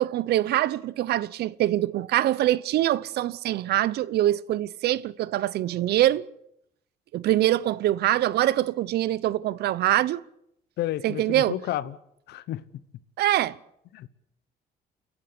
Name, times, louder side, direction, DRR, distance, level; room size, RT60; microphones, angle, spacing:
voice 1, 0.0-6.3 7.1-10.2 11.0-11.6 13.2-13.6, right 14 dB, 75° right, 0.8 m, -24 dB
voice 2, 10.8-12.0 12.3-12.6 13.9-14.1, left 13 dB, 75° left, 1.0 m, -31 dB
29.5 x 11.5 x 8.6 m
cardioid pair, 90°, 17 cm